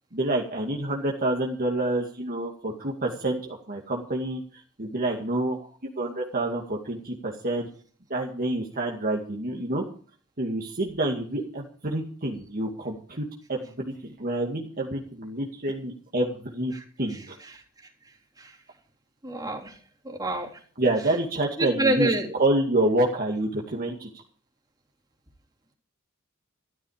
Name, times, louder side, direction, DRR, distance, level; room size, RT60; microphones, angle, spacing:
voice 1, 0.1-4.4 4.8-5.7 6.0-7.7 8.1-9.8 10.4-13.2 13.5-16.7 17.0-17.4 20.8-24.1, right 1 dB, 45° right, 0 dB, 2.3 m, -28 dB
voice 2, 19.2-19.8 20.0-20.5 21.6-22.3, right 2 dB, 20° right, -1 dB, 3.6 m, -27 dB
14.0 x 13.0 x 5.0 m, 0.44 s
head